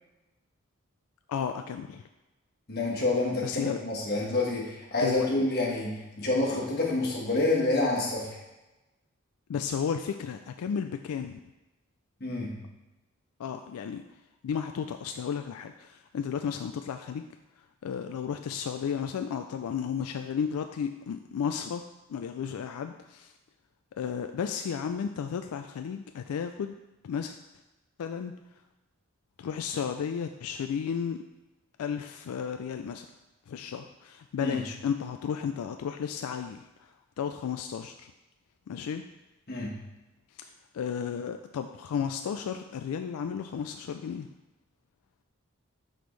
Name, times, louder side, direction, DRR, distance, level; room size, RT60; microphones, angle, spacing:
voice 1, 1.3-2.0 3.4-3.8 5.0-5.3 9.5-11.4 13.4-14.0 14.4-17.2 17.8-21.8 22.1-23.3 24.0-26.7 27.0-27.4 28.0-28.3 29.4-31.2 31.8-33.1 33.5-36.9 37.2-38.1 38.7-39.0 40.4-40.5 40.7-44.3, left 7 dB, 90° left, 7 dB, 0.3 m, -33 dB
voice 2, 2.7-8.3 12.2-12.6 34.4-34.7 39.5-39.7, left 2 dB, 45° left, -3 dB, 1.4 m, -28 dB
6.0 x 5.2 x 3.2 m, 1.0 s
head